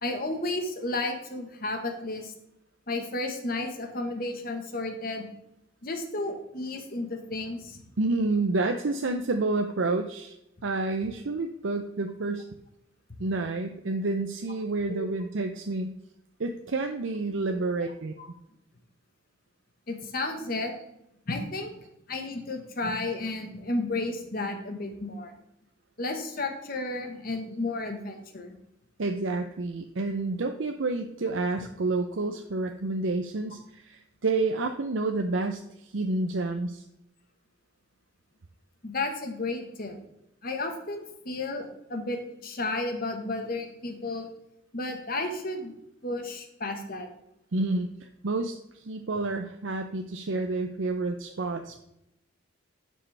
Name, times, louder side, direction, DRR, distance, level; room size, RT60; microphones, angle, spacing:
voice 1, 0.0-2.3 2.9-5.3 5.8-7.8 14.9-15.1 17.5-17.6 18.2-18.3 19.9-20.7 21.3-21.7 22.1-25.3 26.0-28.6 38.8-40.0 40.4-44.3 44.7-45.7 46.0-47.1, left 2 dB, 45° left, 5 dB, 1.3 m, -32 dB
voice 2, 8.0-10.3 10.6-12.5 13.2-15.9 16.4-18.1 29.0-36.8 47.5-51.8, right 3 dB, 70° right, 5 dB, 0.6 m, -29 dB
11.0 x 6.4 x 3.4 m, 0.84 s
head